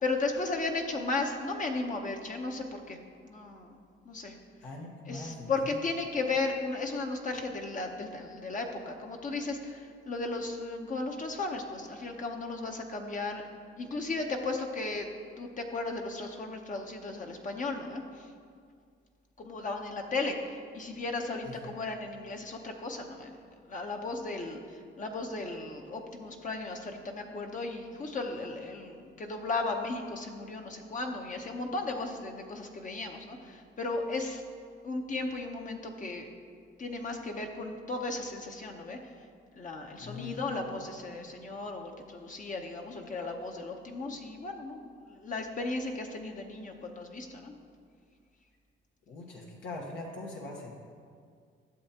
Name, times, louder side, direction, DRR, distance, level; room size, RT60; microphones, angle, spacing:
voice 1, 0.0-3.0 3.2-3.8 4.0-4.4 5.1-13.4 13.8-15.1 15.4-18.3 19.4-23.3 23.7-34.4 34.8-36.3 36.8-39.0 39.5-47.5, left 3 dB, 40° left, 3 dB, 0.8 m, -35 dB
voice 2, 4.6-5.8 21.6-21.7 40.0-40.5 49.1-50.7, left 2 dB, 75° left, -2 dB, 1.2 m, -42 dB
12.0 x 7.1 x 2.9 m, 2.1 s
cardioid pair, 90°, 20 cm